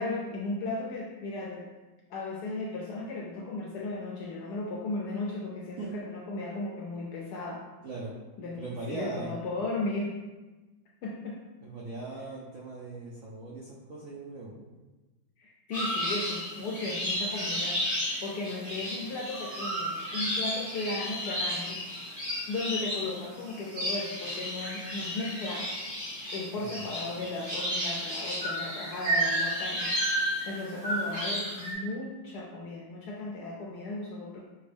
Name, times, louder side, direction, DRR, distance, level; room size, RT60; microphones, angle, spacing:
voice 1, 0.0-1.7 2.1-7.6 8.4-10.1 11.0-11.4 15.4-17.8 18.2-21.8 22.5-25.7 26.3-34.4, left 2 dB, 75° left, -2 dB, 0.9 m, -36 dB
voice 2, 8.5-9.4 11.6-14.6 26.6-26.7, right 2 dB, 75° right, -5 dB, 0.7 m, -39 dB
sound 1, 15.7-31.7, equal, 45° right, 1.5 m, -32 dB
6.0 x 2.2 x 3.3 m, 1.2 s
omnidirectional pair, 2.2 m